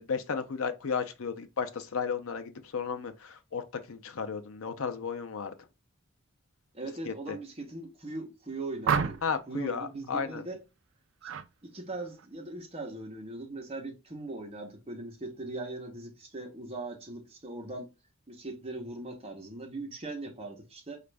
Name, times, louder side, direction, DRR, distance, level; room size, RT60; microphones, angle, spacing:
voice 1, 0.0-5.5 7.1-7.4 9.2-10.4, left 5 dB, 85° left, 0.6 m, -34 dB
voice 2, 6.7-10.6 11.2-11.3 11.6-17.9 18.3-21.0, right 2 dB, 30° right, 0.9 m, -40 dB
sound 1, 8.8-9.5 11.2-11.5 11.9-12.3, right 6 dB, 60° right, 0.3 m, -30 dB
5.0 x 2.5 x 3.3 m
head